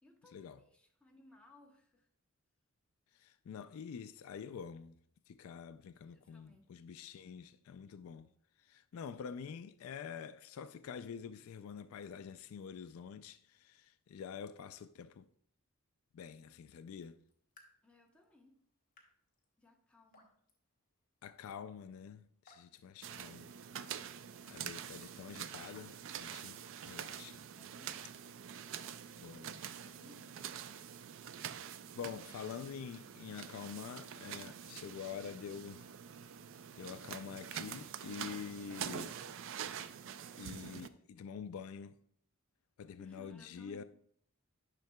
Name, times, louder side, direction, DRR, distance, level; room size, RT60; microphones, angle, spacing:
voice 1, 0.0-2.1 6.0-6.7 17.8-18.6 19.6-20.3 23.3-23.5 27.5-28.3 29.5-30.4 43.0-43.8, left 2 dB, 5° left, 0.9 m, -62 dB
voice 2, 3.2-4.9 5.3-8.3 8.6-15.3 16.1-17.2 21.2-23.5 24.5-27.4 29.2-29.6 32.0-35.9 36.8-39.2 40.4-42.0 42.8-43.8, left 7 dB, 70° left, 0.3 m, -47 dB
Raindrop / Drip, 16.9-26.8, left 2 dB, 40° left, 1.3 m, -70 dB
sound 1, 23.0-40.9, right 8 dB, 60° right, 0.4 m, -46 dB
10.5 x 5.7 x 2.2 m
head